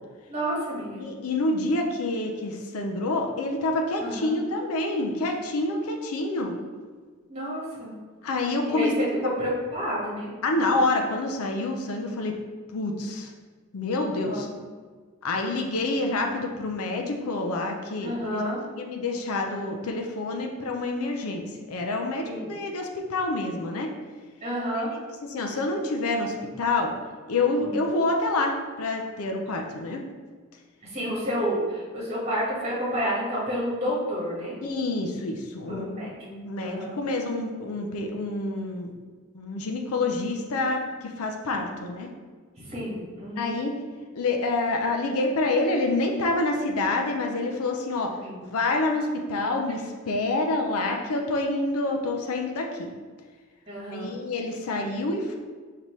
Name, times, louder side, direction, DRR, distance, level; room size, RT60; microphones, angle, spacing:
voice 1, 0.3-1.0 4.0-4.4 7.3-7.9 8.7-10.3 14.3-14.4 18.0-18.6 22.2-22.6 24.4-24.9 27.5-27.8 30.8-34.6 35.7-36.2 36.6-37.0 42.6-43.6 48.2-48.5 53.7-54.1, equal, 30° right, -7 dB, 1.3 m, -30 dB
voice 2, 1.0-6.5 8.2-8.9 10.4-12.3 12.7-13.3 13.7-14.5 15.2-18.5 18.7-23.9 25.3-26.9 27.3-30.0 34.6-35.9 36.2-39.0 39.3-42.1 43.3-43.8 44.1-48.1 48.5-52.9 53.9-55.4, left 2 dB, 75° left, 2 dB, 0.5 m, -27 dB
5.1 x 2.8 x 3.1 m, 1.5 s
head